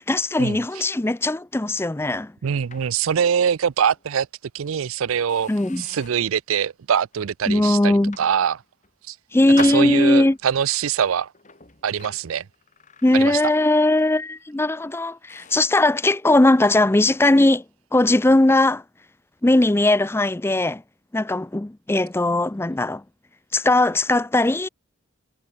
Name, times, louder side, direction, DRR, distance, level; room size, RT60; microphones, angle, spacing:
voice 1, 0.0-2.3 5.5-5.8 7.5-8.2 9.3-10.4 13.0-17.6 17.9-18.8 19.4-20.8 21.1-23.0 23.5-24.7, left 2 dB, 10° left, 0.4 m, -19 dB
sound 1, 1.7-3.5 3.9-4.1 4.7-4.8 5.3-6.3 6.9-7.2 7.9-8.9 9.6-10.6 11.3-13.7 14.0-14.3 14.8-14.9 15.3-15.8, left 5 dB, 35° left, 4.7 m, -42 dB
voice 2, 2.4-4.3 4.5-5.5 5.8-8.6 9.1-9.2 9.6-11.3 11.8-12.4 13.1-13.4, right 8 dB, 75° right, 0.4 m, -23 dB
head